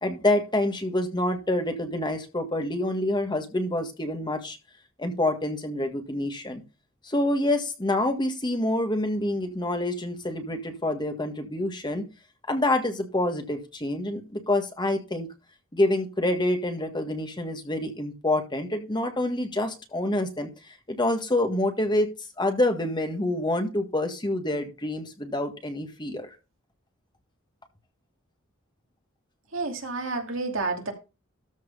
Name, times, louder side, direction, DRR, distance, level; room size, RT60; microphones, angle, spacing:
voice 1, 0.0-4.6 5.0-6.6 7.0-12.0 12.5-15.3 15.7-20.5 20.9-22.1 22.4-26.3, left 1 dB, 20° left, 6 dB, 1.8 m, -27 dB
voice 2, 29.5-30.9, right 3 dB, 70° right, 3 dB, 2.6 m, -30 dB
13.5 x 4.7 x 5.6 m, 0.29 s
head